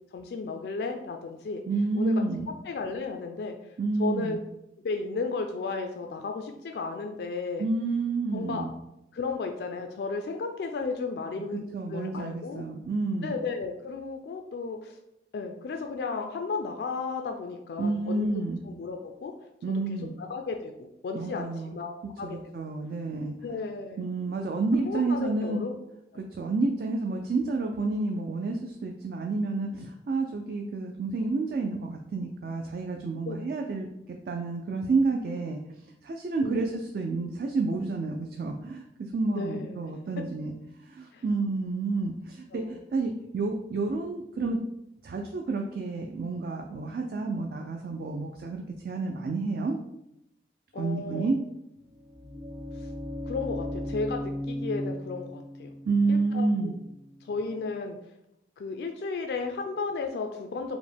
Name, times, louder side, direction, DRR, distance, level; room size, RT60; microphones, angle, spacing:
voice 1, 0.1-1.6 2.0-2.2 2.7-3.6 4.0-4.4 4.8-7.7 8.3-8.6 9.1-12.6 13.2-15.0 15.3-18.3 18.6-19.3 19.9-21.9 22.2-22.4 23.4-24.1 24.9-25.7 26.1-26.3 33.3-33.5 36.4-36.6 39.3-39.8 41.1-41.2 42.5-42.7 50.7-51.3 52.7-52.9 53.2-55.7 56.1-56.7 57.2-58.0 58.6-60.8, left 4 dB, 65° left, 4 dB, 0.3 m, -34 dB
voice 2, 1.7-2.5 3.8-4.4 7.6-8.7 11.7-13.3 17.8-18.6 19.6-20.2 21.1-21.8 22.2-23.5 24.0-25.6 26.3-40.5 40.8-44.6 45.0-49.8 50.7-51.4 55.9-56.8, right 3 dB, 55° right, 3 dB, 0.3 m, -30 dB
sound 1, 51.8-57.7, left 1 dB, 80° right, 1.3 m, -37 dB
4.9 x 2.1 x 3.3 m, 0.85 s
head